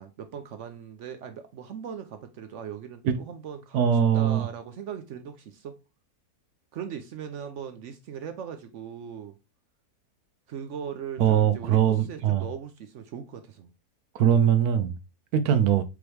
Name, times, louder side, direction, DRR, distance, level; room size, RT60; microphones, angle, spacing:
voice 1, 0.0-5.8 6.7-9.3 10.5-13.7, right 8 dB, 65° right, 0.8 m, -39 dB
voice 2, 3.7-4.5 11.2-12.4 14.1-15.0 15.3-15.8, right 9 dB, 80° right, 1.1 m, -21 dB
4.8 x 3.0 x 3.1 m
omnidirectional pair, 1.6 m